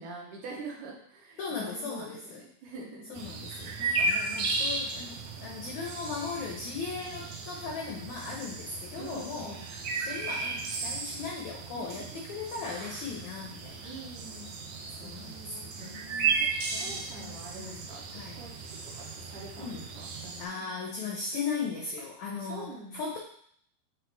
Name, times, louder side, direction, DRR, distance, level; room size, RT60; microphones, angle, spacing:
voice 1, 0.0-3.2 9.0-9.8 11.8-12.2 13.8-14.6 15.0-16.3 16.8-18.6 18.9-20.7 22.4-23.2, right 3 dB, 70° right, -2 dB, 2.2 m, -45 dB
voice 2, 1.4-2.4 3.1-9.8 10.0-13.9 15.0-18.4 19.6-19.8 20.4-23.2, left 5 dB, 80° left, 0 dB, 1.6 m, -38 dB
sound 1, 3.2-20.5, right 4 dB, 90° right, 1.5 m, -35 dB
7.9 x 3.2 x 4.5 m, 0.64 s
omnidirectional pair, 4.3 m